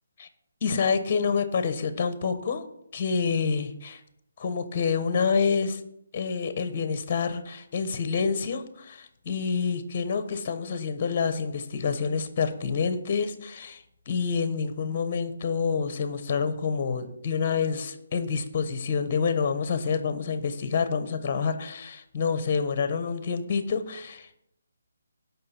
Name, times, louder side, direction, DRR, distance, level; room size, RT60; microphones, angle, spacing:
voice 1, 0.6-2.6 2.9-4.0 4.4-5.8 6.1-24.4, left 5 dB, 30° left, 11 dB, 1.0 m, -27 dB
16.0 x 5.8 x 4.4 m, 0.77 s
hypercardioid pair, 170°, 0 cm